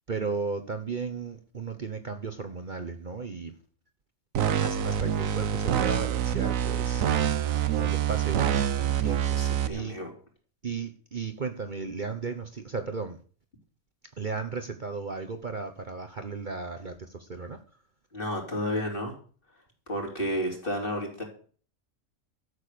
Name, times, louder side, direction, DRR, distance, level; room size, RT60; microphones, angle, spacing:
voice 1, 0.1-3.5 4.6-9.4 9.7-10.0 10.6-13.2 14.2-17.6, right 4 dB, 40° right, 7 dB, 1.1 m, -35 dB
sound 1, 4.3-9.7, right 9 dB, 85° right, 1.3 m, -26 dB
voice 2, 9.4-10.1 18.1-19.2 19.9-21.2, equal, 40° left, 1 dB, 3.9 m, -31 dB
12.5 x 8.1 x 6.8 m, 0.42 s
omnidirectional pair, 1.4 m